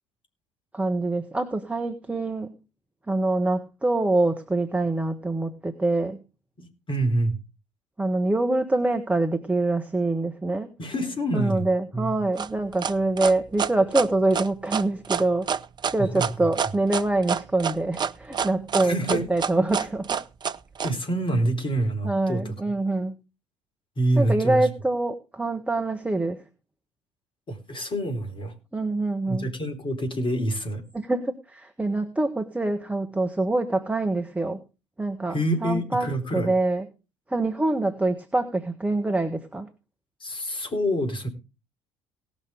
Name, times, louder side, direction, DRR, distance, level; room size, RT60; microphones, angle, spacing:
voice 1, 0.7-2.5 3.1-6.2 8.0-10.7 11.3-15.5 15.9-20.2 22.0-23.1 24.2-26.4 28.7-29.5 30.9-34.6 35.0-35.3 35.6-36.9 37.3-39.7, right 2 dB, 10° right, 5 dB, 1.4 m, -25 dB
voice 2, 6.6-7.4 10.8-12.2 16.0-16.5 18.8-19.2 20.8-22.5 24.0-24.7 27.5-28.5 29.3-30.8 35.3-36.5 40.2-41.3, right 1 dB, 35° left, 4 dB, 4.3 m, -27 dB
sound 1, 12.4-20.9, right 7 dB, 30° right, 0.6 m, -27 dB
18.0 x 6.5 x 5.1 m, 0.30 s
figure-of-eight pair, 55°, 15 cm